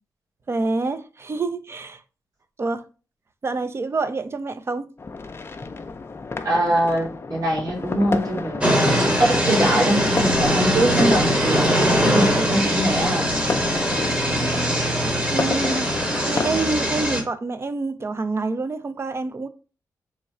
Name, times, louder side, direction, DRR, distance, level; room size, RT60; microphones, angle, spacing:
voice 1, 0.5-2.0 2.6-2.9 3.4-4.9 14.4-14.7 15.3-15.9 16.3-19.5, right 3 dB, 35° right, 0.4 m, -27 dB
sound 1, 5.0-16.6, left 4 dB, 35° left, 0.4 m, -31 dB
voice 2, 6.4-8.6 9.0-13.3, right 1 dB, 55° right, 1.6 m, -23 dB
sound 2, 8.6-17.2, equal, 15° right, 1.0 m, -21 dB
3.1 x 2.3 x 4.2 m
cardioid pair, 70°, 7 cm